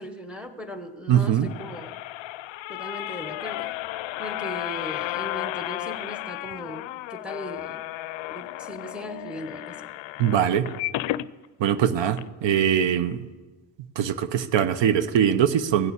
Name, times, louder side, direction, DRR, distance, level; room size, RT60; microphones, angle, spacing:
voice 1, 0.0-2.0 2.7-3.7 4.2-7.8 8.3-9.8, equal, ahead, 8 dB, 0.9 m, -38 dB
sound 1, 1.1-11.3 11.8-11.9 12.1-12.2, left 16 dB, 70° left, 0.5 m, -33 dB
voice 2, 1.1-1.5 10.2-10.7 11.6-13.2 14.0-15.9, right 9 dB, 65° right, 12 dB, 0.8 m, -22 dB
16.0 x 6.9 x 8.5 m, 1.3 s
cardioid pair, 140°, 48 cm